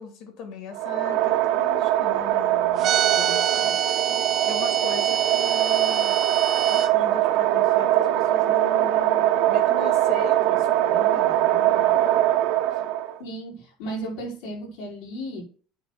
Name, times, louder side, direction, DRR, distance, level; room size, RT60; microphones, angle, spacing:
voice 1, 0.0-4.1 4.4-6.2 6.7-12.0 12.7-12.8, left 6 dB, 60° left, 2.6 m, -39 dB
sound 1, 0.7-13.2, right 13 dB, 75° right, 1.1 m, -22 dB
sound 2, 2.8-6.9, right 9 dB, 40° right, 0.7 m, -26 dB
voice 2, 13.2-15.4, right 1 dB, 85° left, 4.9 m, -34 dB
9.3 x 3.4 x 6.6 m
cardioid pair, 145°, 0 cm